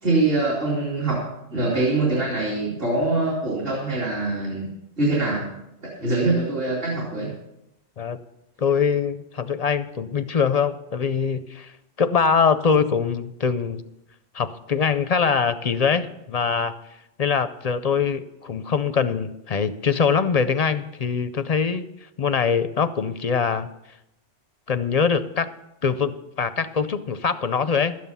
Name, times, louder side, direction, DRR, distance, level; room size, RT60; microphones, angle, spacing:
voice 1, 0.0-4.7 5.0-5.5 5.8-7.3, right 2 dB, 55° right, -6 dB, 2.9 m, -24 dB
voice 2, 8.6-11.7 12.0-13.8 14.3-16.7 17.2-21.8 22.2-23.7 24.7-25.5 25.8-28.0, left 6 dB, 50° left, 12 dB, 0.5 m, -23 dB
13.0 x 9.3 x 5.6 m, 0.88 s
omnidirectional pair, 1.2 m